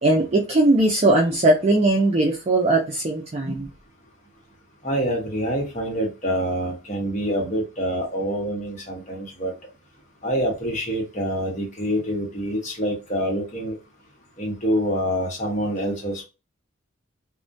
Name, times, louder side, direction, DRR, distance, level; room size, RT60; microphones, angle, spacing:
voice 1, 0.0-3.7, right 2 dB, 30° right, 0.4 m, -19 dB
voice 2, 4.8-9.5 10.2-13.8 14.4-16.2, equal, 35° left, 0.9 m, -26 dB
2.3 x 2.1 x 2.5 m
head